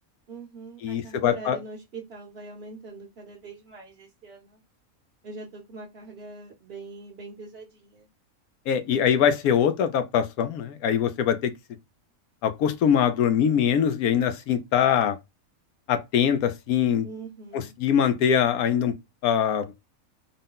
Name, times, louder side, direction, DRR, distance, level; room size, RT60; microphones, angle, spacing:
voice 1, 0.3-4.6 5.2-8.1 17.0-17.7, right 4 dB, 50° right, 0.9 m, -42 dB
voice 2, 0.8-1.6 8.7-11.5 12.4-15.2 15.9-17.1 17.5-18.9 19.2-19.7, left 8 dB, 85° left, 1.1 m, -23 dB
3.9 x 2.1 x 3.7 m
omnidirectional pair, 1.5 m